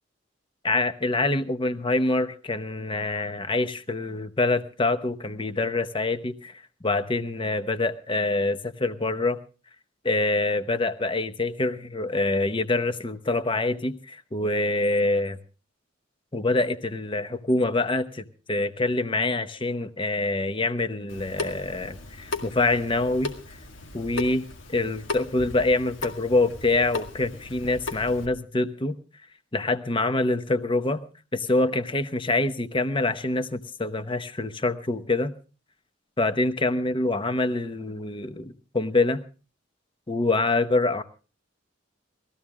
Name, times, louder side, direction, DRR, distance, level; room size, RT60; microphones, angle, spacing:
voice 1, 0.6-6.5 6.8-9.4 10.0-15.4 16.3-23.3 23.9-24.4 24.7-29.0 29.5-31.0 31.3-35.3 36.2-39.2 40.1-41.0, left 2 dB, 25° left, 10 dB, 0.9 m, -25 dB
Water tap faucet / Sink (filling or washing) / Drip, 21.1-28.3, left 3 dB, 90° left, 2.0 m, -37 dB
19.5 x 14.5 x 3.6 m, 0.36 s
head